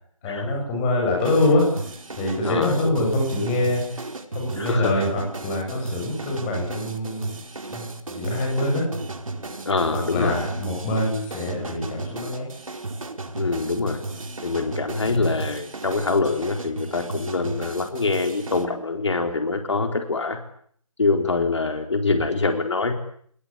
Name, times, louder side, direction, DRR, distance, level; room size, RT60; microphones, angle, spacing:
voice 1, 0.2-4.0 4.3-7.3 7.7-8.9 9.9-12.5 15.0-15.3, left 1 dB, 10° left, 0 dB, 7.6 m, -25 dB
sound 1, 1.2-18.7, right 2 dB, 80° right, 4.8 m, -35 dB
voice 2, 2.4-2.9 4.6-4.9 9.7-10.4 13.4-14.0 14.4-20.4 21.0-22.9, left 3 dB, 55° left, 5 dB, 4.1 m, -24 dB
29.5 x 20.5 x 8.9 m, 0.63 s
figure-of-eight pair, 170°, 17 cm